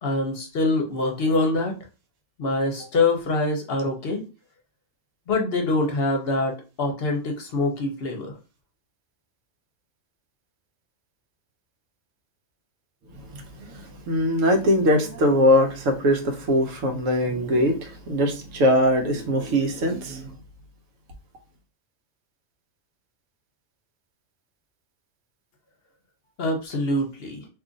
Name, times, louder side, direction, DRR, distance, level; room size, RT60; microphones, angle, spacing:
voice 1, 0.0-1.7 2.4-4.2 5.3-8.4 26.4-27.5, left 2 dB, 55° left, 0.8 m, -24 dB
voice 2, 13.6-20.3, equal, 80° right, 1.1 m, -21 dB
2.7 x 2.4 x 3.8 m
omnidirectional pair, 1.3 m